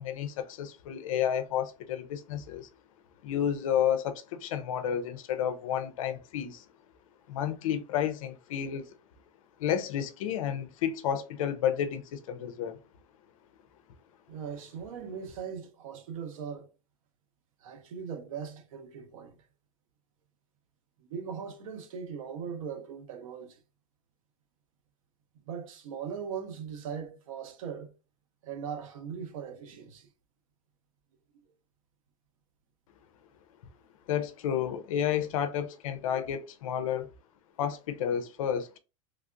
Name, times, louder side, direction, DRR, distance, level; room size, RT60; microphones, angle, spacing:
voice 1, 0.0-2.7 3.2-6.6 7.3-8.9 9.6-12.8 34.1-37.1 37.6-38.7, left 9 dB, 65° left, 0.5 m, -31 dB
voice 2, 14.3-16.7 17.6-19.4 21.0-23.6 25.5-27.9 28.4-30.1, right 7 dB, 65° right, 0.8 m, -39 dB
3.2 x 2.4 x 2.5 m
supercardioid pair, 155°, 19 cm